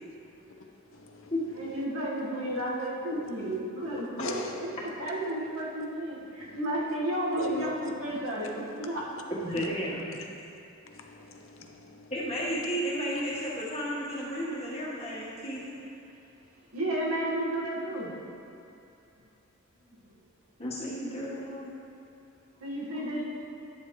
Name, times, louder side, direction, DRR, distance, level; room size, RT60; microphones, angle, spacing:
voice 1, 1.0-1.3 4.2-4.4 7.4-7.9 10.9-12.0, left 2 dB, 70° left, 3 dB, 0.7 m, -38 dB
voice 2, 1.6-9.1 9.5-9.7 16.7-18.1 19.9-20.0 22.6-23.2, right 1 dB, 90° right, -5 dB, 1.8 m, -32 dB
voice 3, 9.3-10.1 12.1-15.7 20.6-21.6, equal, 30° left, -6 dB, 1.5 m, -33 dB
9.9 x 7.3 x 3.2 m, 2.7 s
head